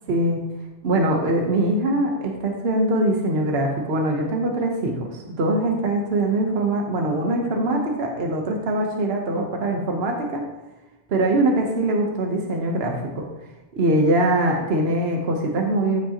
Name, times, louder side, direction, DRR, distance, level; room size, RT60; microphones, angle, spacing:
voice 1, 0.1-0.4 0.8-10.4 11.1-13.2 13.7-16.0, right 1 dB, 65° right, 1 dB, 1.2 m, -22 dB
14.5 x 5.2 x 2.9 m, 1.0 s
omnidirectional pair, 1.2 m